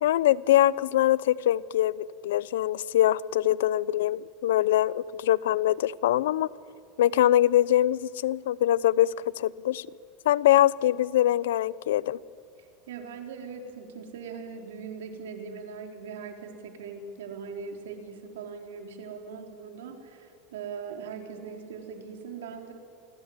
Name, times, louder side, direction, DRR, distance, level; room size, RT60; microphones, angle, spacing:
voice 1, 0.0-1.9 2.2-6.5 7.0-9.9 10.3-12.2, left 13 dB, 90° left, 21 dB, 0.7 m, -23 dB
voice 2, 12.9-22.7, right 5 dB, 90° right, 4 dB, 4.2 m, -40 dB
27.0 x 20.5 x 9.7 m, 2.4 s
supercardioid pair, 125°, 0 cm